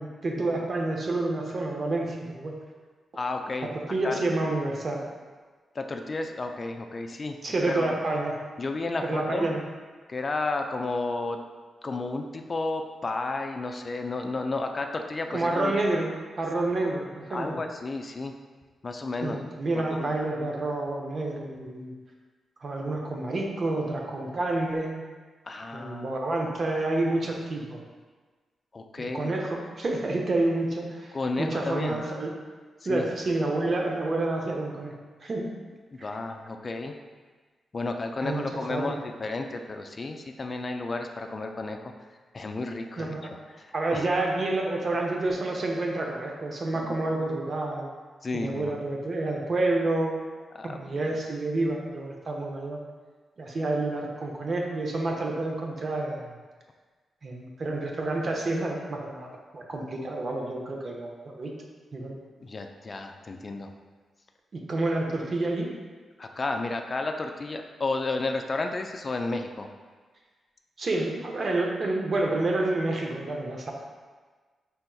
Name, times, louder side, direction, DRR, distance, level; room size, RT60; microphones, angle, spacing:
voice 1, 0.0-2.5 3.7-5.0 7.4-8.3 9.0-9.6 15.3-17.6 19.2-21.9 22.6-25.0 25.7-27.8 29.0-32.3 32.9-34.9 35.2-35.5 36.0-36.1 38.2-39.0 43.0-43.3 43.7-47.9 48.3-50.2 50.6-52.8 53.4-56.3 57.2-59.3 59.5-61.5 61.9-62.1 64.5-65.7 70.8-73.7, right 2 dB, 50° right, 0 dB, 0.6 m, -29 dB
voice 2, 3.2-3.7 4.0-4.2 5.8-7.4 7.7-9.5 10.1-11.4 11.8-15.8 17.3-18.3 18.8-19.4 19.7-20.1 25.4-26.2 28.7-29.3 31.1-32.0 32.8-33.1 35.9-36.9 37.7-41.8 42.3-43.1 43.6-44.0 46.9-47.0 48.2-48.8 50.5-50.8 51.1-51.2 62.4-63.7 66.2-69.7, left 3 dB, 40° left, 4 dB, 0.3 m, -32 dB
4.3 x 3.4 x 2.3 m, 1.4 s
cardioid pair, 70°, 0 cm